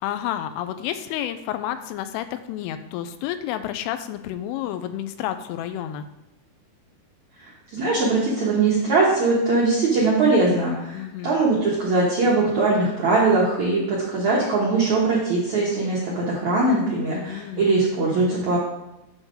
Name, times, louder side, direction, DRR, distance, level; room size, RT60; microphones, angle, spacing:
voice 1, 0.0-6.1 10.9-11.4 17.1-17.7, left 11 dB, 90° left, 10 dB, 3.1 m, -30 dB
voice 2, 7.4-18.6, right 3 dB, 75° right, -6 dB, 1.7 m, -21 dB
9.0 x 6.3 x 3.8 m, 0.94 s
omnidirectional pair, 5.6 m